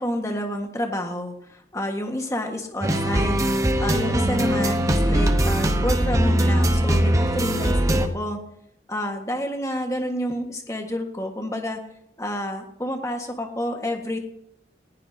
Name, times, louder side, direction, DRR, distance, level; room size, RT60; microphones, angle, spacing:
voice 1, 0.0-1.3 1.7-3.4 3.8-8.4 8.9-11.8 12.2-14.2, equal, 15° left, 3 dB, 1.6 m, -29 dB
sound 1, 2.8-8.1, right 1 dB, 20° right, 1.0 m, -21 dB
19.0 x 16.5 x 2.8 m, 0.74 s
head